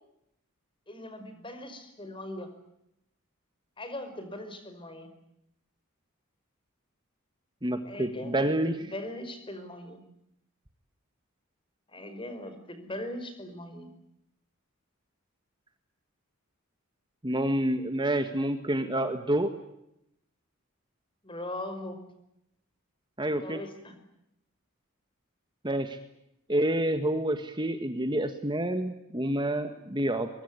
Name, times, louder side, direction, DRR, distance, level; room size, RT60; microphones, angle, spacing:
voice 1, 0.9-2.5 3.8-5.1 7.8-10.0 11.9-13.9 21.2-22.0 23.4-24.0, left 1 dB, 25° left, 8 dB, 5.3 m, -40 dB
voice 2, 7.6-8.7 17.2-19.5 23.2-23.6 25.6-26.0 26.5-30.3, right 1 dB, 20° right, 8 dB, 1.7 m, -28 dB
23.5 x 23.5 x 9.7 m, 0.81 s
head